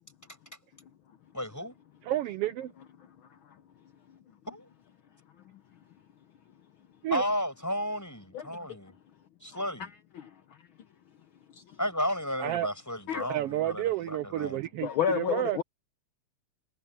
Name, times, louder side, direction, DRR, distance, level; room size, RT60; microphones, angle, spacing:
voice 1, 1.3-1.7 4.5-4.7 7.1-9.0 9.4-9.9 11.8-13.9 14.4-14.6, equal, 5° left, 7.1 m, -33 dB
voice 2, 2.0-2.7 7.0-7.2 12.4-12.7 13.2-15.6, right 14 dB, 85° right, 1.3 m, -31 dB
voice 3, 14.8-15.6, left 9 dB, 70° left, 1.2 m, -29 dB
omnidirectional pair, 3.4 m